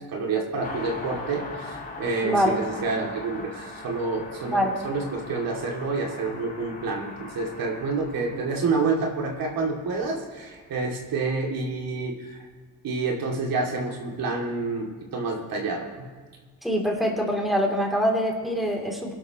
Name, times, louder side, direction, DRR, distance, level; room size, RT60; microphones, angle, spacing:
voice 1, 0.1-12.5 12.8-16.1, right 3 dB, 70° right, 0 dB, 2.6 m, -28 dB
Car passing by, 0.6-10.6 10.8-10.9, left 3 dB, 25° left, 4.3 m, -41 dB
voice 2, 2.2-2.6 4.5-4.8 16.6-19.1, equal, ahead, 0 dB, 3.0 m, -24 dB
23.0 x 12.0 x 3.1 m, 1.5 s
cardioid pair, 110°, 36 cm